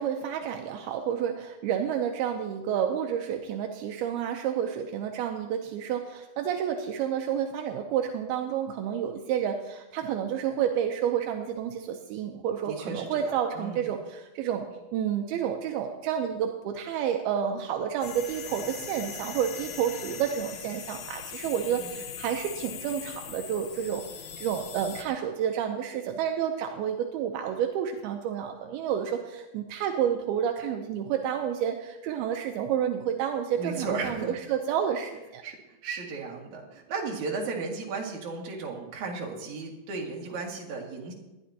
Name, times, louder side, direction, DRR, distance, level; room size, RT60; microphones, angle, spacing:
voice 1, 0.0-35.4, right 9 dB, 80° right, 4 dB, 2.7 m, -30 dB
voice 2, 12.7-13.9 21.7-22.0 33.6-34.4 35.4-35.6 35.8-41.1, right 4 dB, 55° right, -1 dB, 3.1 m, -35 dB
sound 1, 18.0-25.0, left 8 dB, 70° left, 1.8 m, -41 dB
20.0 x 11.5 x 2.9 m, 1.0 s
omnidirectional pair, 4.5 m